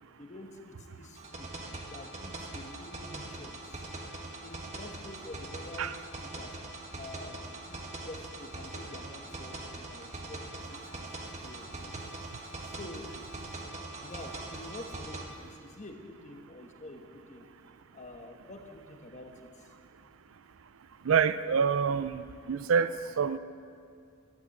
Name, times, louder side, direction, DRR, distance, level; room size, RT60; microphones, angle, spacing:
voice 1, 0.0-1.6 1.9-3.9 4.4-6.6 7.0-11.1 11.4-11.9 12.5-13.3 13.6-17.5 17.9-19.7, left 1 dB, 35° left, 4 dB, 1.3 m, -48 dB
sound 1, 1.2-15.2, right 2 dB, 30° right, 1.5 m, -42 dB
voice 2, 21.0-23.4, right 6 dB, 65° right, 14 dB, 0.4 m, -27 dB
12.5 x 11.5 x 7.8 m, 2.3 s
head